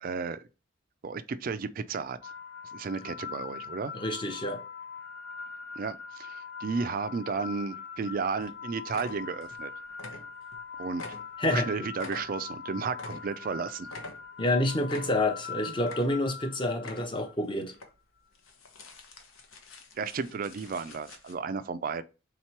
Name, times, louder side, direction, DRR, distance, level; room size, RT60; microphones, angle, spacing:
voice 1, 0.0-0.4 1.0-2.3 2.7-3.9 5.8-9.7 10.8-11.2 11.5-13.9 20.0-22.0, right 5 dB, 45° right, 0.3 m, -33 dB
sound 1, 2.2-17.3, left 6 dB, 55° left, 0.4 m, -42 dB
voice 2, 3.9-4.6 11.4-11.9 14.4-17.7, left 1 dB, 25° left, 0.7 m, -28 dB
sound 2, 8.0-8.1 8.4-8.6 8.9-9.6 9.9-10.6 10.9-13.5 13.9-14.5 14.9-15.4 15.8-16.4 16.7-17.3 17.7-17.9 18.3-21.3, left 3 dB, 85° left, 0.9 m, -46 dB
3.9 x 2.9 x 4.4 m
head